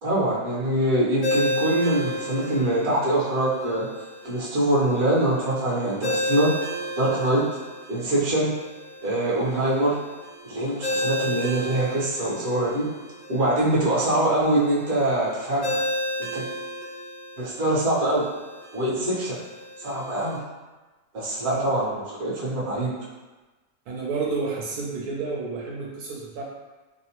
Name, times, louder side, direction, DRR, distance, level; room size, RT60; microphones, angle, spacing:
voice 1, 0.0-3.9 4.2-6.5 7.0-7.4 7.9-8.5 9.0-9.9 10.4-12.8 13.3-15.8 16.2-16.4 17.4-18.2 18.7-19.4 19.8-20.4 21.1-21.8 22.2-22.9, right 1 dB, 50° right, -7 dB, 0.7 m, -23 dB
Ringtone, 1.2-20.4, left 1 dB, 80° left, 0.5 m, -33 dB
voice 2, 23.9-26.4, right 4 dB, 75° right, -3 dB, 1.0 m, -30 dB
2.8 x 2.0 x 2.8 m, 1.2 s
omnidirectional pair, 1.7 m